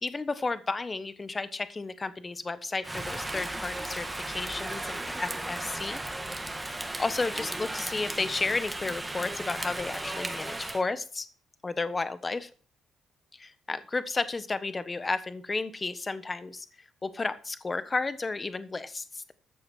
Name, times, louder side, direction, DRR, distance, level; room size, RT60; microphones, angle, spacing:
voice 1, 0.0-6.0 7.0-11.3 11.6-12.5 13.3-19.3, left 3 dB, 25° left, 13 dB, 1.2 m, -32 dB
Rain, 2.8-10.8, right 1 dB, 15° right, 1.7 m, -35 dB
14.0 x 6.9 x 6.1 m, 0.40 s
cardioid pair, 90°, 0 cm